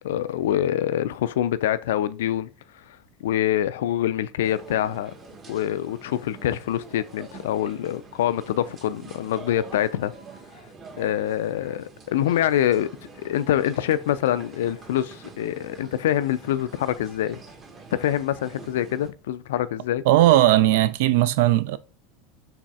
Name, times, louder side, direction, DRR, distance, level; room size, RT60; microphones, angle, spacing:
voice 1, 0.0-5.1 5.5-10.1 11.0-12.9 13.2-17.4 17.9-20.0, left 11 dB, 65° left, 0.3 m, -25 dB
sound 1, 4.4-19.1, right 4 dB, 30° right, 1.3 m, -46 dB
voice 2, 20.1-21.8, right 14 dB, 60° right, 0.3 m, -18 dB
6.2 x 3.3 x 2.3 m
figure-of-eight pair, 80°, 0 cm